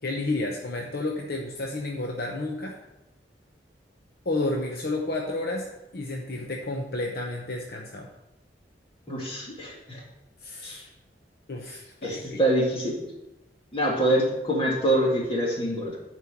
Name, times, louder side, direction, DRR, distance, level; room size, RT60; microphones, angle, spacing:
voice 1, 0.0-2.8 4.2-8.1 10.4-10.9 11.5-12.4, left 2 dB, 60° left, 1 dB, 0.8 m, -31 dB
voice 2, 9.1-10.0 10.6-10.8 12.0-13.0 13.7-16.0, right 1 dB, 30° left, -2 dB, 2.1 m, -25 dB
9.6 x 4.5 x 5.8 m, 0.95 s
head